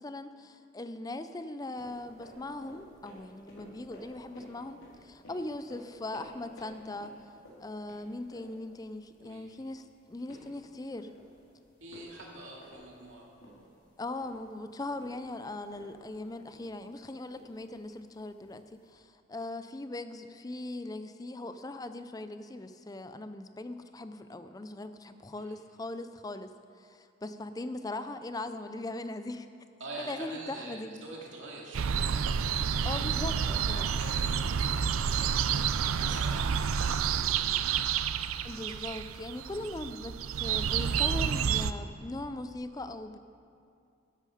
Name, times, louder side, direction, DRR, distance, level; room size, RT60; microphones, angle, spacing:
voice 1, 0.0-7.2 7.6-11.1 14.0-29.5 30.0-30.9 32.8-33.4 33.7-33.9 38.4-43.2, left 2 dB, 20° left, 10 dB, 0.4 m, -40 dB
sound 1, 1.8-18.9, equal, 80° left, 3.6 m, -55 dB
voice 2, 11.8-13.3 25.4-25.6 29.8-35.4 35.9-37.6, right 2 dB, 65° right, -2 dB, 2.4 m, -46 dB
sound 2, 31.7-41.7, right 7 dB, 85° right, 0.4 m, -29 dB
13.0 x 11.0 x 5.0 m, 2.4 s
head